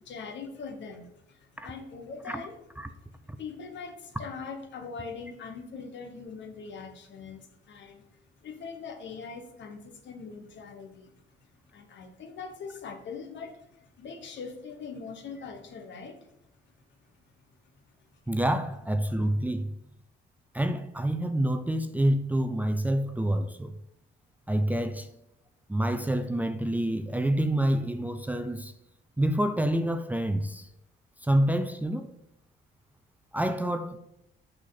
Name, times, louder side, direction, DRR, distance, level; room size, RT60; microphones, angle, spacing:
voice 1, 0.0-2.5 3.2-16.3 16.6-16.7, left 5 dB, 65° left, 1.3 m, -42 dB
voice 2, 18.3-19.7 20.5-23.7 24.5-25.1 25.7-28.7 29.2-30.7 31.2-32.1 33.3-34.0, right 1 dB, 10° right, 0.5 m, -27 dB
6.1 x 5.9 x 4.0 m
cardioid pair, 90°, 20 cm